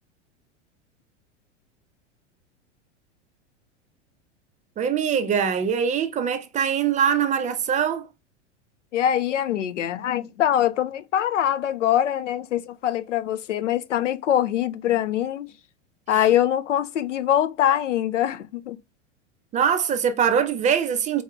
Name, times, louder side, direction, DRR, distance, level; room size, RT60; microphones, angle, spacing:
voice 1, 4.8-8.1 19.5-21.2, right 7 dB, 20° right, 0.4 m, -23 dB
voice 2, 8.9-15.5 16.1-18.8, left 11 dB, 85° left, 0.5 m, -23 dB
4.1 x 3.5 x 2.2 m
hypercardioid pair, 95°, 35 cm